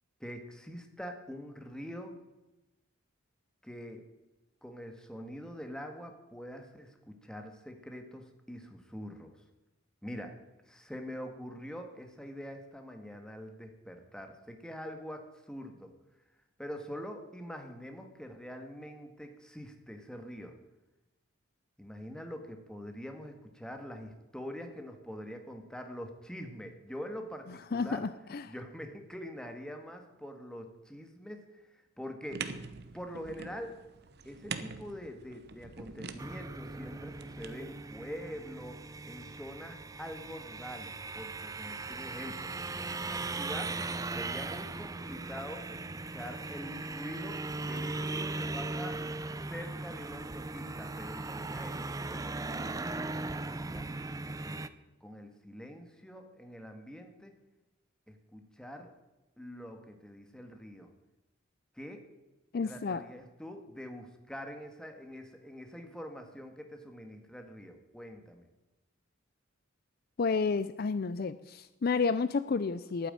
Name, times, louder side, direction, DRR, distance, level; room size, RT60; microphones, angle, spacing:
voice 1, 0.2-2.1 3.6-4.0 4.6-9.4 10.0-10.4 10.7-15.9 16.6-20.6 21.8-28.1 28.5-31.7 32.0-32.6 32.9-33.8 34.2-49.1 49.5-53.9 54.4-54.6 55.0-57.3 58.1-58.9 59.4-60.9 61.7-62.1 62.6-68.5, equal, 5° left, 5 dB, 1.5 m, -45 dB
voice 2, 27.7-28.5 62.5-63.0 70.2-73.1, left 4 dB, 50° left, 14 dB, 0.4 m, -31 dB
sound 1, 32.3-37.5, right 5 dB, 55° right, 0.9 m, -44 dB
sound 2, 36.2-54.7, right 3 dB, 15° right, 0.5 m, -38 dB
11.5 x 9.4 x 8.8 m, 1.0 s
head